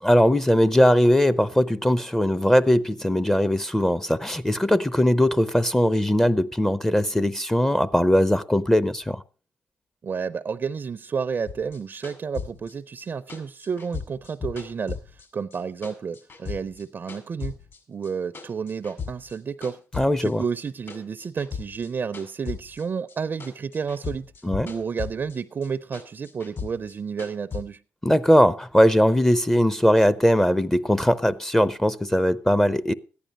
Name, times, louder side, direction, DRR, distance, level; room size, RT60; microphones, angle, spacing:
voice 1, 0.0-9.2 20.0-20.4 24.4-24.7 28.0-32.9, equal, 10° left, 0.6 m, -20 dB
voice 2, 10.0-17.6 17.9-19.8 20.2-24.3 24.6-27.8, right 6 dB, 45° right, 0.5 m, -31 dB
sound 1, 11.5-15.6 15.8-17.8 18.0-19.4 19.6-23.2 23.4-25.4 25.6-27.6, left 6 dB, 55° left, 4.8 m, -36 dB
14.0 x 10.0 x 5.2 m
cardioid pair, 70°, 5 cm